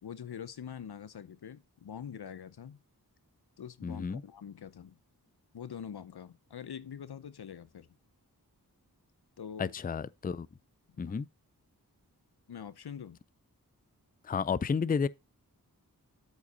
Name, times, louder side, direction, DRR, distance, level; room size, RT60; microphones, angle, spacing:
voice 1, 0.0-2.8 3.6-5.0 5.5-7.9 9.4-9.7 11.0-11.2 12.5-13.2, left 8 dB, 90° left, 0.7 m, -44 dB
voice 2, 3.8-4.2 9.6-10.5 11.0-11.3 14.2-15.1, left 6 dB, 25° left, 0.4 m, -31 dB
8.2 x 5.2 x 4.0 m
wide cardioid pair, 45°, 37 cm